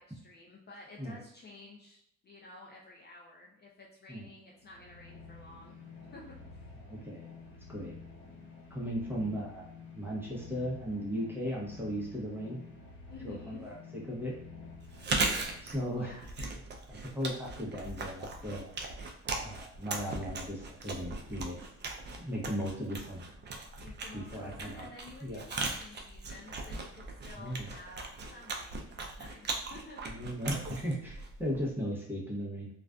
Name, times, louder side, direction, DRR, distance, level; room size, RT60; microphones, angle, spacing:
voice 1, 0.0-2.0 2.2-5.8 6.1-6.8 8.5-8.9 13.1-13.7 15.9-16.3 23.8-30.0, left 3 dB, 35° left, -2 dB, 0.4 m, -52 dB
sound 1, 4.5-16.2, left 4 dB, 75° left, 0.9 m, -50 dB
voice 2, 6.8-7.3 7.7-7.9 8.7-9.7 9.9-12.6 13.2-13.8 14.1-14.3 15.6-16.1 16.9-18.7 19.4-21.6 22.2-23.2 24.1-24.9 25.2-25.4 27.3-27.7 30.0-32.7, equal, 5° right, -4 dB, 0.8 m, -36 dB
Chewing mastication, 14.9-31.7, right 3 dB, 35° right, 0.4 m, -38 dB
2.4 x 2.4 x 2.2 m, 0.72 s
cardioid pair, 90°, 30 cm